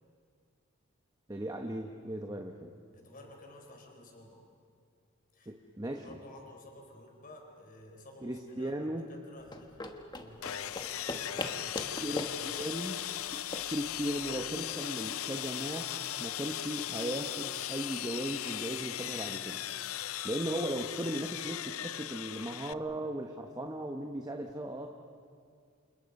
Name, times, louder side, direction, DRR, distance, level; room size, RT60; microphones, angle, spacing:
voice 1, 1.3-2.7 5.5-6.2 8.2-9.1 12.0-12.3 12.6-13.0 13.7-19.6 20.2-24.9, right 1 dB, 20° right, 3 dB, 1.1 m, -37 dB
voice 2, 2.9-4.4 5.3-5.5 5.8-12.8, left 1 dB, 40° left, 2 dB, 4.7 m, -53 dB
sound 1, 9.4-14.6, left 2 dB, 20° left, 1.4 m, -41 dB
Sawing, 10.4-22.7, left 12 dB, 85° left, 0.6 m, -38 dB
29.5 x 28.5 x 5.5 m, 2.2 s
head